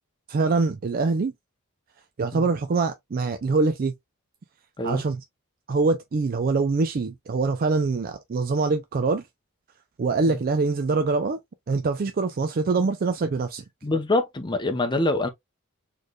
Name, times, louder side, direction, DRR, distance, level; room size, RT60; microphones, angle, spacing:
voice 1, 0.3-1.3 2.2-3.9 4.8-5.2 5.7-9.2 10.0-11.4 11.7-13.6, right 4 dB, 45° right, 0.4 m, -24 dB
voice 2, 13.8-15.3, left 2 dB, 20° left, 0.7 m, -25 dB
4.3 x 3.2 x 2.3 m
head